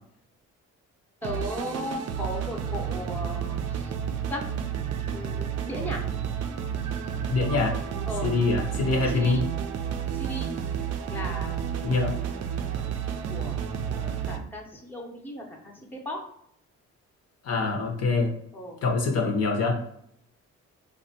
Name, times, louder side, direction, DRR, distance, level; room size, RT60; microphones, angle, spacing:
voice 1, 1.2-3.8 4.3-4.4 5.1-6.0 8.1-8.3 9.1-9.5 10.2-10.5 11.1-12.0 13.3-13.6 13.9-16.2 18.5-18.8, left 1 dB, 5° left, 1 dB, 0.6 m, -36 dB
sound 1, 1.2-14.4, right 8 dB, 55° right, 0.4 m, -31 dB
voice 2, 7.3-7.7 8.2-9.4 11.8-12.2 17.4-18.3 18.8-19.8, left 3 dB, 55° left, 2 dB, 0.7 m, -24 dB
3.4 x 2.2 x 2.7 m, 0.71 s
cardioid pair, 90°, 30 cm